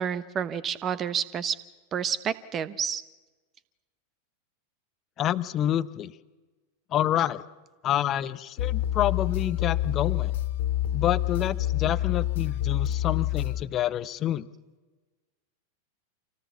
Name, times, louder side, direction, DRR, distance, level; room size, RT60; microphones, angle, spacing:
voice 1, 0.0-1.6 1.9-3.0 7.2-7.3, right 8 dB, 25° right, 16 dB, 1.0 m, -29 dB
voice 2, 5.2-6.1 6.9-7.4 7.8-10.3 10.9-14.5, left 11 dB, 30° left, 15 dB, 0.8 m, -28 dB
sound 1, 8.6-13.6, left 13 dB, 55° left, 2.1 m, -27 dB
27.0 x 17.5 x 7.2 m, 1.2 s
figure-of-eight pair, 90°, 0 cm